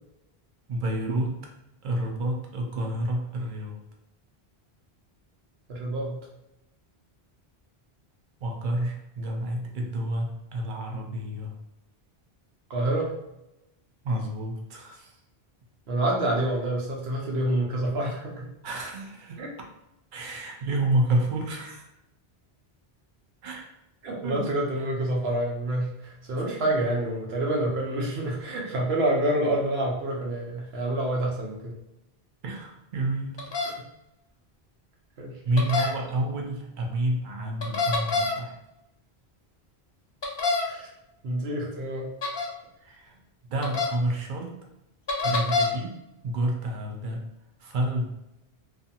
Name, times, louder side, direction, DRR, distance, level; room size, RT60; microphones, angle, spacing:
voice 1, 0.7-1.5 1.8-3.8 8.4-11.5 14.0-15.1 18.6-19.4 20.1-21.9 23.4-23.6 24.2-24.5 24.8-24.9 32.4-33.5 35.4-38.5 42.8-43.1 43.5-44.5 45.2-45.9 46.2-47.3 47.6-48.2, right 1 dB, 60° right, 1 dB, 0.7 m, -29 dB
voice 2, 5.7-6.2 12.7-13.1 15.9-18.5 19.4-19.5 24.0-31.8 33.6-33.7 35.2-35.4 35.8-35.9 40.6-40.9 41.2-42.1, right 1 dB, 75° right, -1 dB, 0.9 m, -27 dB
sound 1, 33.4-33.7 35.6-35.9 37.6-38.3 40.2-40.6 42.2-42.5 43.6-43.9 45.1-45.7, left 3 dB, 45° left, 0.3 m, -25 dB
2.5 x 2.4 x 2.7 m, 0.87 s
omnidirectional pair, 1.1 m